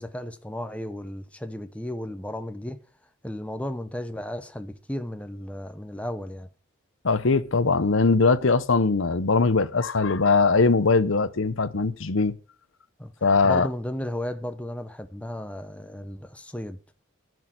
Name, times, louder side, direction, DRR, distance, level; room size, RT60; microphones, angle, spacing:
voice 1, 0.0-2.8 3.2-6.5 13.0-13.1 13.4-16.8, left 1 dB, 5° left, 0.8 m, -34 dB
voice 2, 7.0-12.3 13.2-13.7, left 4 dB, 70° left, 0.8 m, -21 dB
11.0 x 6.2 x 8.9 m
head